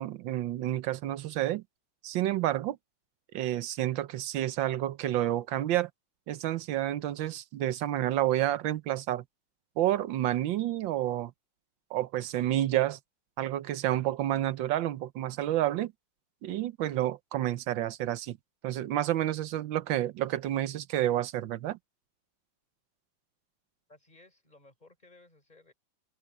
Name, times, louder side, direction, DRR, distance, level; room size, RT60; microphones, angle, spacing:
voice 1, 0.0-1.6 2.0-2.8 3.3-5.9 6.3-9.2 9.8-11.3 11.9-13.0 13.4-15.9 16.4-18.4 18.6-21.8, right 13 dB, 90° right, 1.5 m, -29 dB
voice 2, 23.9-25.7, left 2 dB, 20° left, 5.5 m, -58 dB
open air
omnidirectional pair, 2.0 m